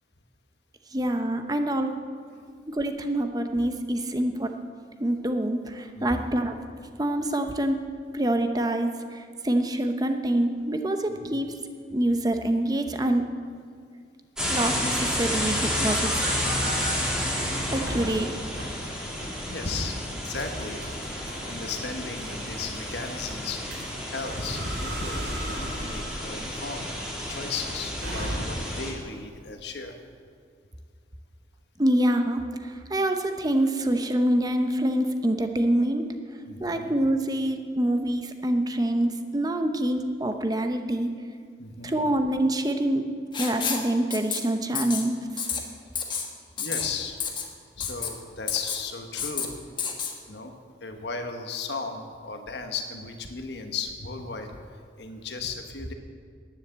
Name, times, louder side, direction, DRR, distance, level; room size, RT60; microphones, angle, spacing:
voice 1, 0.9-1.9 2.7-4.5 5.0-6.5 7.0-7.8 8.1-11.5 11.9-13.3 14.5-16.1 17.7-18.3 31.8-36.1 36.6-41.1 41.8-43.1 43.4-45.2, right 1 dB, 20° right, 6 dB, 0.8 m, -26 dB
voice 2, 5.9-6.3 11.2-11.3 19.4-20.0 20.2-21.0 21.5-23.6 24.1-26.9 27.3-29.9 36.5-36.9 41.6-42.0 46.6-47.2 47.8-49.6 50.3-50.5 50.8-54.6 55.0-55.9, left 4 dB, 70° left, 5 dB, 1.4 m, -35 dB
sound 1, 14.4-28.9, equal, 5° right, 2.6 m, -31 dB
sound 2, 15.6-16.9 17.4-18.1 18.6-18.7 19.2-19.4 19.8-28.8, right 1 dB, 75° right, 3.9 m, -37 dB
Writing, 43.3-43.9 44.1-44.4 44.7-45.0 45.4-45.6 46.0-46.3 46.6-46.9 47.2-47.5 47.8-48.1 48.5-48.8 49.2-49.5 49.8-50.1, left 6 dB, 25° left, 1.3 m, -29 dB
11.0 x 10.0 x 8.0 m, 2.1 s
head